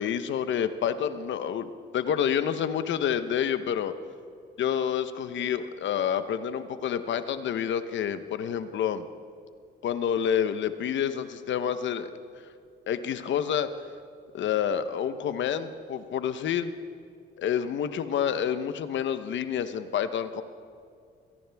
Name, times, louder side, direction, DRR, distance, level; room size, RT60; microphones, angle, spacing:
voice 1, 0.0-3.9 4.6-9.1 9.8-12.1 12.9-13.7 14.3-16.7 17.4-20.4, left 8 dB, 70° left, 11 dB, 0.9 m, -28 dB
23.5 x 17.5 x 3.5 m, 2.2 s
cardioid pair, 90°, 20 cm